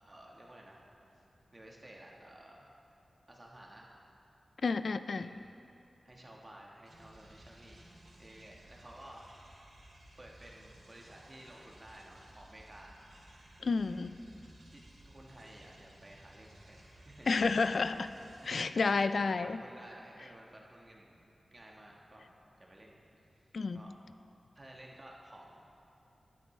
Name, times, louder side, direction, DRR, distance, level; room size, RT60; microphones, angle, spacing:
voice 1, 0.1-0.8 1.1-1.2 1.5-2.7 3.3-3.9 5.1-5.5 6.0-7.8 8.2-9.2 10.2-13.0 14.3-17.6 18.4-23.0 23.3-23.9 24.5-25.6, right 1 dB, 25° right, -2 dB, 1.3 m, -54 dB
voice 2, 4.6-5.3 13.6-14.2 17.3-18.1 18.5-19.6 23.5-23.8, left 4 dB, 65° left, 12 dB, 0.3 m, -30 dB
sound 1, 6.8-18.5, right 1 dB, 80° right, 2.4 m, -58 dB
13.0 x 11.0 x 3.2 m, 2.8 s
wide cardioid pair, 100°, 0 cm